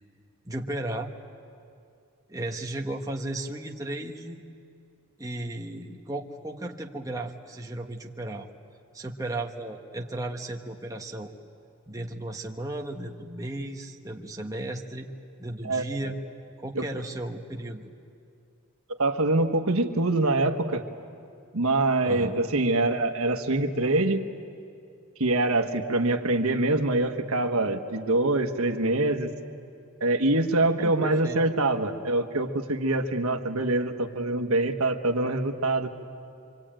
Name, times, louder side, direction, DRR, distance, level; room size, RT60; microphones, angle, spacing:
voice 1, 0.4-1.1 2.3-4.4 5.2-8.5 8.9-11.3 11.9-15.1 15.4-16.2 16.6-17.8 22.0-22.4 30.8-31.4, right 1 dB, 15° right, 1 dB, 1.2 m, -35 dB
voice 2, 15.6-16.1 16.7-16.8 19.0-20.8 21.5-24.3 25.2-29.3 30.0-35.9, right 2 dB, 85° right, 5 dB, 1.5 m, -25 dB
25.5 x 25.0 x 9.0 m, 2.4 s
head